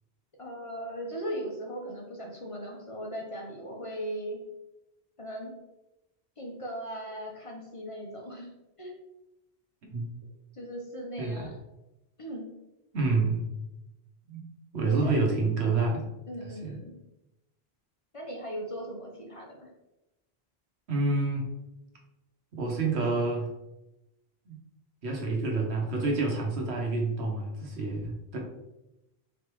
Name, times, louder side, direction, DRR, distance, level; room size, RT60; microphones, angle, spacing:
voice 1, 0.4-4.4 5.2-5.5 6.4-8.5 8.8-8.9 10.5-11.5 12.2-12.4 14.8-15.2 16.3-16.9 18.1-19.7, equal, 35° left, -2 dB, 0.8 m, -38 dB
voice 2, 11.2-11.5 12.9-13.5 14.3-14.4 14.7-16.0 16.4-16.8 20.9-21.5 22.6-23.5 24.5-24.6 25.0-28.4, right 3 dB, 80° right, 0 dB, 1.2 m, -28 dB
4.1 x 3.4 x 3.0 m, 0.94 s
omnidirectional pair, 1.1 m